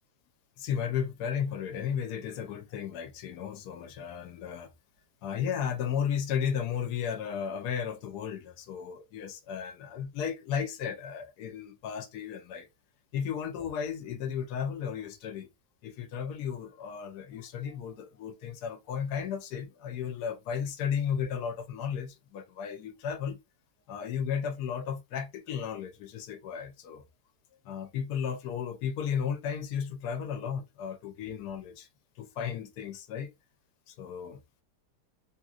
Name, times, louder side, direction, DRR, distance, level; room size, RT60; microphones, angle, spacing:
voice 1, 0.6-4.7 5.2-12.7 13.1-15.5 15.8-23.4 23.9-27.0 27.6-31.9 32.2-33.3 33.9-34.4, left 7 dB, 75° left, 1.2 m, -34 dB
2.9 x 2.8 x 2.4 m
omnidirectional pair, 1.8 m